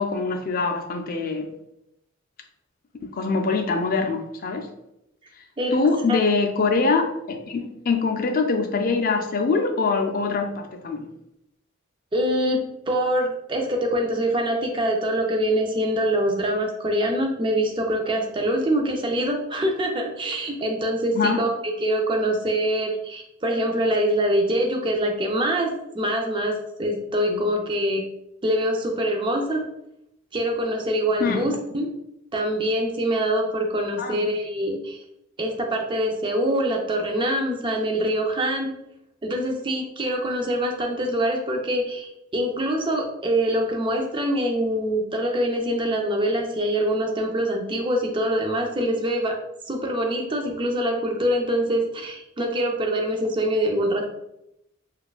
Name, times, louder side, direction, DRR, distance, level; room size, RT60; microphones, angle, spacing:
voice 1, 0.0-1.5 3.0-4.7 5.7-11.1 21.1-21.4 27.3-27.4 31.2-31.5 34.0-34.2, left 4 dB, 45° left, 5 dB, 0.4 m, -24 dB
voice 2, 12.1-28.0 28.4-29.6 30.3-31.9 32.3-35.0 35.4-38.7 39.2-49.4 49.7-54.1, equal, 25° right, 2 dB, 0.4 m, -24 dB
4.2 x 2.3 x 2.4 m, 0.82 s
head